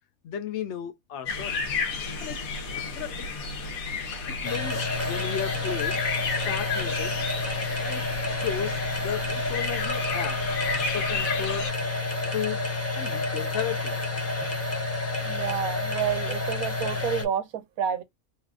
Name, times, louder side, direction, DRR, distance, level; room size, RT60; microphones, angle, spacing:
voice 1, 0.2-1.8 2.2-3.3 4.3-6.0 6.3-7.1 7.8-10.4 10.9-11.7 12.3-12.6 12.9-14.0, left 9 dB, 60° left, 0.9 m, -34 dB
sound 1, 1.3-11.7, left 4 dB, 80° left, 1.4 m, -32 dB
sound 2, 4.4-17.3, left 2 dB, 20° left, 0.3 m, -29 dB
voice 2, 15.2-18.0, right 8 dB, 85° right, 1.2 m, -29 dB
3.2 x 2.4 x 3.5 m
omnidirectional pair, 1.5 m